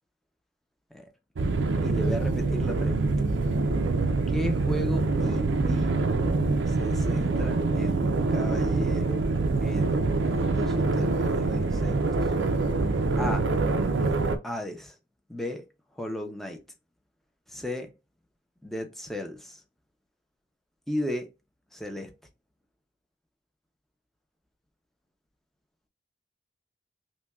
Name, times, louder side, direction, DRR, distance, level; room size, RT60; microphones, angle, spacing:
sound 1, 1.4-14.4, right 3 dB, 85° right, 0.5 m, -25 dB
voice 1, 1.8-3.1 4.3-6.0 6.7-9.2 9.6-12.0 13.2-13.4 14.4-14.9 15.3-15.6 16.0-16.6 17.5-17.9 18.6-19.6 20.9-21.3 21.7-22.1, left 1 dB, ahead, 0.6 m, -35 dB
5.7 x 2.2 x 2.3 m
head